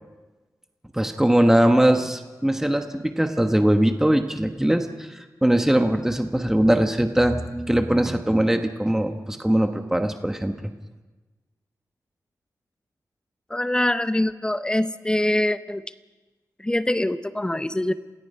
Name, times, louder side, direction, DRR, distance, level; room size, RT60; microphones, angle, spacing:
voice 1, 0.9-10.5, right 1 dB, 5° right, 5 dB, 1.2 m, -21 dB
voice 2, 13.5-15.8 16.6-17.9, left 1 dB, 15° left, 11 dB, 0.8 m, -24 dB
28.0 x 17.5 x 5.5 m, 1.2 s
wide cardioid pair, 115°, 7 cm